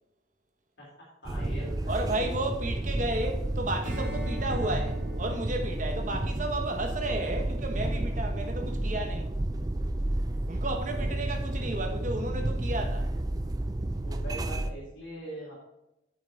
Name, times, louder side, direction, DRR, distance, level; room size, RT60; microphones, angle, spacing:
voice 1, 1.2-2.3 10.9-11.2 14.0-15.6, right 1 dB, 65° left, 2.8 m, -42 dB
sound 1, 1.2-14.7, right 1 dB, 20° right, 0.4 m, -31 dB
voice 2, 1.9-9.3 10.5-13.1, right 2 dB, 40° right, 1.2 m, -33 dB
Strum, 3.8-8.6, left 1 dB, 90° right, 2.5 m, -45 dB
8.7 x 6.2 x 4.0 m
head